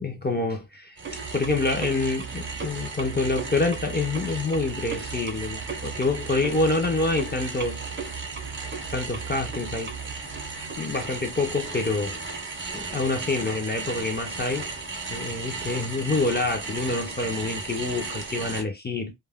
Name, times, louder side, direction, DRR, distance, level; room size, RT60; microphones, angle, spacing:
voice 1, 0.0-7.8 8.9-9.9 10.8-12.2 12.7-14.7 15.1-19.1, left 3 dB, 20° left, 0.5 m, -27 dB
sound 1, 1.0-18.6, right 4 dB, 25° right, 0.6 m, -34 dB
2.3 x 2.1 x 3.5 m
wide cardioid pair, 125°, 47 cm